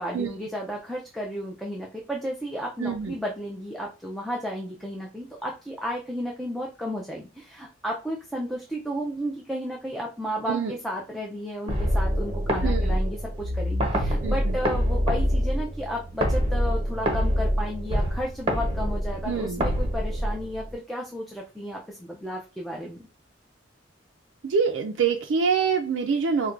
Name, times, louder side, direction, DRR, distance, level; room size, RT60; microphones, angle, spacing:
voice 1, 0.0-23.1, equal, ahead, -2 dB, 0.4 m, -33 dB
voice 2, 2.8-3.1 10.5-10.7 12.6-13.0 14.2-14.6 19.3-19.7 24.4-26.5, right 5 dB, 65° right, 2 dB, 0.4 m, -25 dB
sound 1, 11.7-20.7, equal, 30° right, 0.8 m, -25 dB
4.4 x 2.2 x 2.4 m, 0.31 s
head